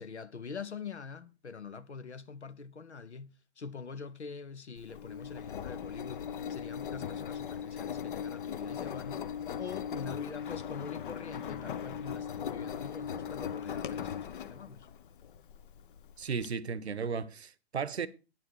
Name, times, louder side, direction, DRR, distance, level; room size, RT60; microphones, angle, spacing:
voice 1, 0.0-6.2 6.5-9.3 9.6-14.9, left 5 dB, 85° left, 0.8 m, -44 dB
Engine, 4.8-16.5, left 8 dB, 50° left, 0.7 m, -39 dB
voice 2, 16.2-18.1, right 6 dB, 75° right, 0.8 m, -35 dB
9.4 x 8.9 x 4.5 m
figure-of-eight pair, 120°, 33 cm